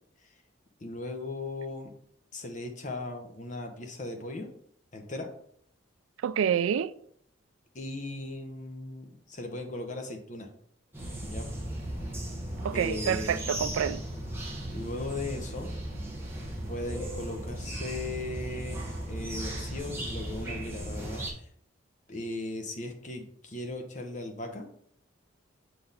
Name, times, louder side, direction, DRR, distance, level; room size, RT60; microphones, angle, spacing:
voice 1, 0.8-1.9 2.3-4.5 4.9-5.3 7.7-10.5 11.2-11.5 12.7-13.5 14.7-15.7 16.7-21.5 22.1-24.8, left 2 dB, 40° left, 0.9 m, -38 dB
voice 2, 6.2-6.9 12.6-14.0, right 8 dB, 90° right, 0.3 m, -27 dB
sound 1, 10.9-21.3, right 1 dB, 10° right, 1.2 m, -36 dB
6.7 x 4.1 x 4.0 m
head